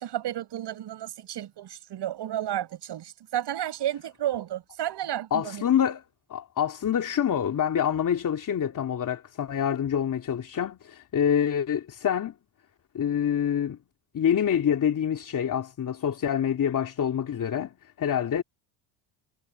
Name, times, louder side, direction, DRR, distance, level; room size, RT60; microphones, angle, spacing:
voice 1, 0.0-5.6, right 12 dB, 55° right, 6.3 m, -32 dB
voice 2, 5.3-6.0 6.3-12.3 12.9-13.8 14.1-17.7 18.0-18.4, left 9 dB, 40° left, 2.8 m, -26 dB
cardioid pair, 100°, 48 cm